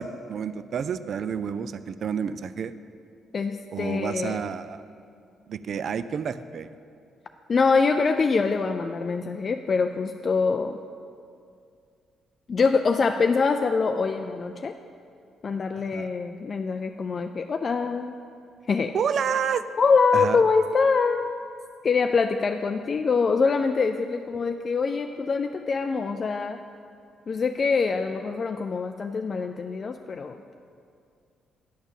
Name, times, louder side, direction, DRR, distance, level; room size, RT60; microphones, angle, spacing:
voice 1, 0.0-2.8 3.7-4.8 5.5-6.7 15.9-16.1 18.9-19.6 20.1-20.4, right 7 dB, 60° right, 13 dB, 0.3 m, -29 dB
voice 2, 3.3-4.4 7.5-10.8 12.5-14.7 15.4-18.2 18.7-18.9 19.8-21.4 21.8-26.6 27.3-30.4, left 4 dB, 45° left, 6 dB, 0.3 m, -24 dB
10.0 x 4.3 x 7.0 m, 2.4 s
cardioid pair, 90°, 0 cm